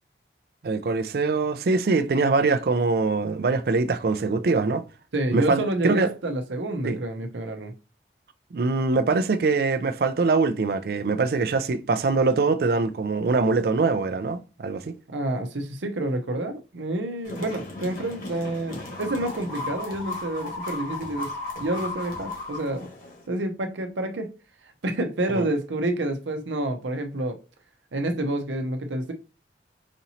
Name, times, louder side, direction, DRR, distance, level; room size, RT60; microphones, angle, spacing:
voice 1, 0.6-4.8 5.3-6.1 6.8-7.0 8.5-14.9 25.4-25.5, right 3 dB, 55° right, 0.4 m, -23 dB
voice 2, 5.1-7.7 15.1-21.3 21.6-22.9 23.3-24.3 24.8-27.4 27.9-29.1, right 1 dB, 85° right, 0.7 m, -28 dB
sound 1, 17.2-23.3, left 2 dB, 50° left, 1.2 m, -35 dB
5.1 x 2.9 x 2.8 m
head